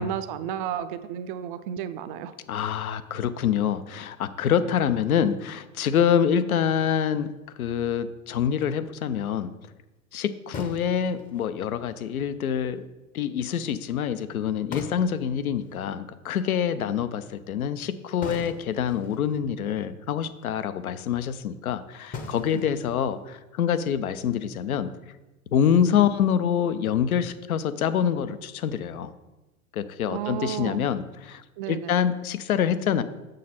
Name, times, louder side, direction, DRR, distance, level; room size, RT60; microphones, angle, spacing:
voice 1, 0.0-2.3 22.5-22.6 30.1-30.9 31.6-32.0, right 9 dB, 40° right, 12 dB, 0.4 m, -32 dB
voice 2, 2.5-7.3 7.6-9.5 10.1-12.8 13.1-24.9 25.5-29.1 29.7-33.0, left 8 dB, 80° left, 13 dB, 0.6 m, -26 dB
sound 1, 6.6-7.4 9.3-9.4 10.5-11.6 14.4-14.5 14.7-15.8 18.2-19.4 20.0-20.1 20.4-20.5 22.1-23.4, left 4 dB, 20° left, 0.7 m, -40 dB
6.5 x 6.4 x 4.2 m, 1.1 s
hypercardioid pair, 105°, 42 cm